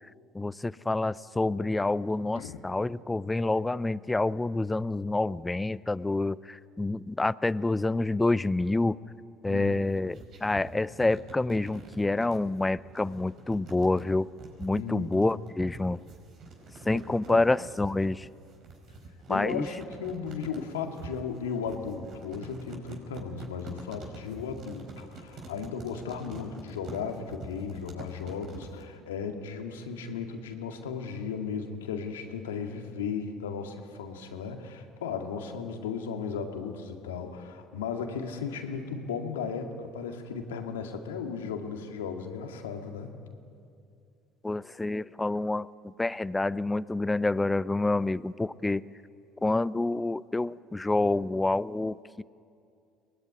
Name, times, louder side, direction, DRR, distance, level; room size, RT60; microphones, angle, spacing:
voice 1, 0.3-9.0 9.4-14.3 14.6-16.0 16.8-18.3 19.3-19.7 44.4-45.7 46.0-48.8 49.4-52.2, left 2 dB, 15° left, 19 dB, 0.6 m, -28 dB
sound 1, 9.8-28.9, right 3 dB, 55° right, 5.8 m, -46 dB
voice 2, 14.7-15.1 17.3-17.5 19.3-43.1, left 6 dB, 90° left, 4 dB, 2.1 m, -36 dB
22.5 x 20.5 x 9.6 m, 2.4 s
hypercardioid pair, 70°, 0 cm